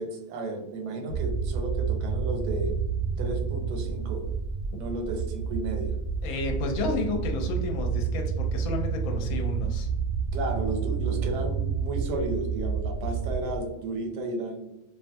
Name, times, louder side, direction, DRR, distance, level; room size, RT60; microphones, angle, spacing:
voice 1, 0.0-2.7 3.2-4.3 4.7-5.9 10.3-14.7, right 2 dB, 90° right, 3 dB, 1.2 m, -33 dB
sound 1, 1.1-13.6, right 6 dB, 65° right, 0.7 m, -29 dB
voice 2, 6.2-9.9, left 3 dB, 70° left, 2 dB, 1.0 m, -31 dB
2.7 x 2.3 x 2.6 m, 0.95 s
omnidirectional pair, 1.7 m